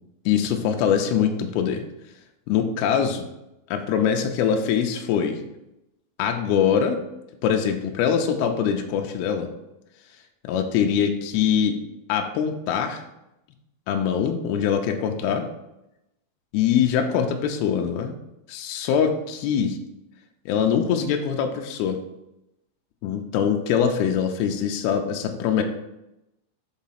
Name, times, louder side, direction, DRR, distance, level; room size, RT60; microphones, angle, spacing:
voice 1, 0.3-1.8 2.5-3.3 3.7-5.4 6.2-7.0 7.4-9.5 10.4-11.8 12.1-13.0 13.9-15.4 16.5-18.1 18.5-19.8 20.5-22.0 23.0-25.6, left 8 dB, 90° left, 4 dB, 2.6 m, -23 dB
7.2 x 3.8 x 5.7 m, 0.88 s
omnidirectional pair, 4.3 m